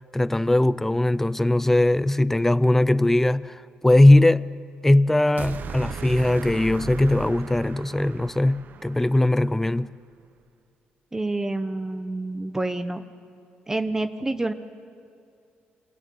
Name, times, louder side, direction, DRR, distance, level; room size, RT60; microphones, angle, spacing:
voice 1, 0.1-4.5 4.8-9.9, left 1 dB, 10° left, 0.6 m, -20 dB
sound 1, 5.4-9.6, right 6 dB, 55° right, 1.0 m, -37 dB
voice 2, 11.1-13.0 13.7-14.5, right 2 dB, 15° right, 1.1 m, -28 dB
28.0 x 18.5 x 9.4 m
cardioid pair, 115°, 4 cm